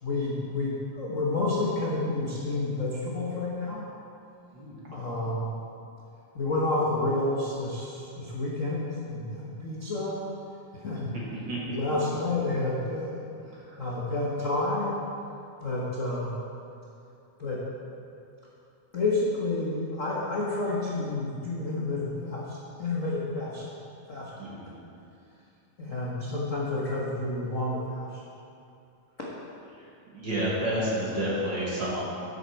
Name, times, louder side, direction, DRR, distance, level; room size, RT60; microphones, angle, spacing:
voice 1, 0.0-3.8 4.9-5.6 6.3-10.2 10.8-11.1 11.7-13.2 13.5-15.0 15.6-16.4 17.4-17.6 18.9-23.6 24.1-24.3 25.8-28.2 29.2-29.3, left 2 dB, 75° left, -6 dB, 0.7 m, -30 dB
voice 2, 4.5-5.2 11.3-11.8 13.7-13.8 24.4-24.7 30.1-32.1, right 1 dB, 45° right, -6 dB, 2.0 m, -30 dB
11.5 x 8.2 x 4.5 m, 2.6 s
omnidirectional pair, 3.5 m